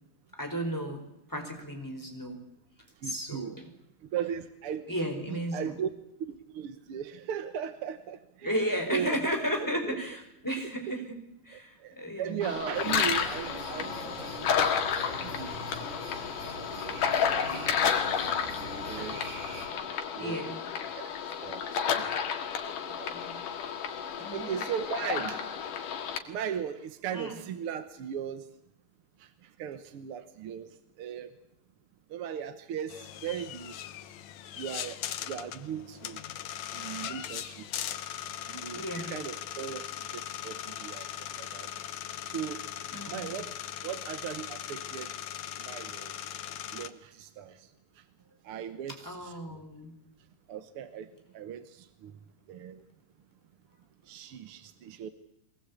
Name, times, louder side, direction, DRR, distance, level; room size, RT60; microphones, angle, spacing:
voice 1, 0.4-1.0 1.3-2.4 3.0-3.7 4.9-5.7 8.4-11.2 11.4-12.5 12.8-13.3 20.2-20.6 23.1-23.4 24.2-24.6 25.2-25.4 27.1-27.4 38.7-39.1 42.9-43.4 48.9-49.9, equal, 5° left, 3 dB, 4.4 m, -34 dB
voice 2, 3.0-3.6 4.1-4.8 5.3-5.9 6.3-8.6 8.9-9.2 9.8-10.0 11.5-14.5 14.7-15.6 16.8-17.9 18.9-19.2 19.7-20.4 21.0-21.1 21.4-22.0 22.8-23.1 24.3-25.4 26.3-28.4 29.2-29.3 29.6-30.7 31.0-31.3 32.1-33.7 34.6-34.9 35.2-36.2 36.7-37.6 38.4-39.9 40.1-41.0 41.4-41.7 42.3-42.6 43.1-43.5 43.8-45.1 45.6-46.1 46.7-47.7 48.4-49.6 50.5-51.1 51.3-52.1 52.5-52.8 54.1-55.1, right 8 dB, 60° right, 10 dB, 1.5 m, -37 dB
sound 1, 12.4-26.2, left 7 dB, 85° left, 3.3 m, -31 dB
sound 2, 12.7-19.7, right 3 dB, 90° right, 5.5 m, -43 dB
sound 3, 32.9-46.9, left 11 dB, 70° left, 2.1 m, -39 dB
23.5 x 19.5 x 8.4 m, 0.78 s
omnidirectional pair, 3.7 m